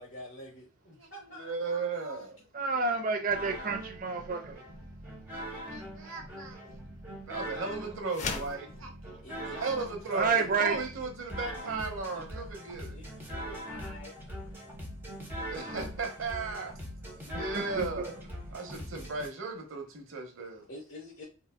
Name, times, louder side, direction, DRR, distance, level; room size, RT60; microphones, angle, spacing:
voice 1, 0.0-1.6 9.2-9.6 10.3-10.6 12.9-14.1 20.7-21.2, left 1 dB, 65° left, 1.0 m, -47 dB
voice 2, 1.4-2.5 5.7-6.8 7.3-13.0 15.5-16.7 17.3-18.2 18.5-20.6, right 4 dB, 85° right, 0.8 m, -36 dB
voice 3, 2.5-4.6 10.1-10.8 17.3-18.1, right 4 dB, 40° right, 0.5 m, -30 dB
sound 1, 3.3-19.3, equal, 10° right, 0.8 m, -42 dB
sound 2, 8.1-8.6, left 4 dB, 35° left, 0.4 m, -34 dB
3.9 x 2.2 x 2.2 m
head